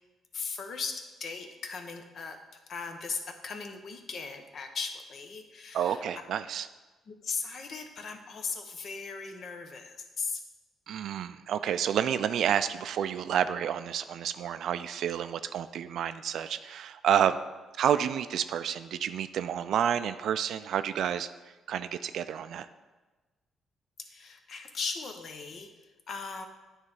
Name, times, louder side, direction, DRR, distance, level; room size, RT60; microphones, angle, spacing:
voice 1, 0.3-6.0 7.1-10.4 24.1-26.5, left 4 dB, 55° left, 6 dB, 0.8 m, -38 dB
voice 2, 5.7-6.7 10.9-17.4 17.8-21.3 21.7-22.7, right 9 dB, 70° right, 12 dB, 0.3 m, -29 dB
9.1 x 3.2 x 4.8 m, 1.2 s
cardioid pair, 90°, 0 cm